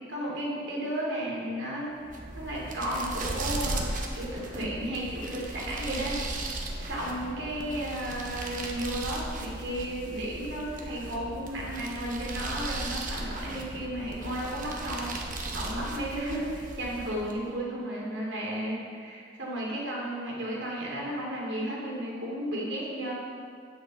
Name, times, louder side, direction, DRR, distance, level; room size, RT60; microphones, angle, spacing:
voice 1, 0.1-15.1 15.5-23.1, right 1 dB, 85° right, -4 dB, 2.4 m, -34 dB
sound 1, 2.0-17.5, right 2 dB, 45° right, 0.9 m, -37 dB
9.1 x 7.7 x 4.0 m, 2.3 s
head